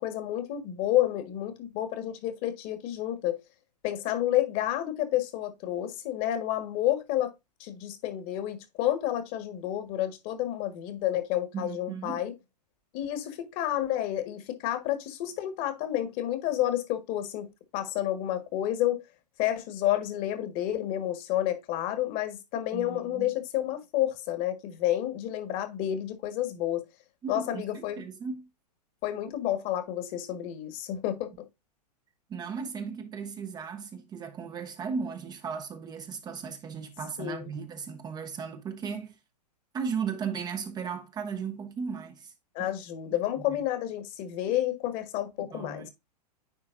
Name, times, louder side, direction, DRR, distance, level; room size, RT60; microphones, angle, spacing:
voice 1, 0.0-3.4 3.8-7.3 7.6-12.3 12.9-17.5 17.7-19.0 19.4-26.8 27.3-28.0 29.0-31.4 37.2-37.5 42.5-45.9, left 13 dB, 40° left, 1.5 m, -30 dB
voice 2, 11.5-12.2 22.7-23.3 27.2-28.5 32.3-39.2 39.7-42.3 42.6-42.7 43.4-43.6 45.4-45.9, right 6 dB, 20° right, 0.7 m, -36 dB
9.8 x 3.8 x 2.5 m
figure-of-eight pair, 110°, 21 cm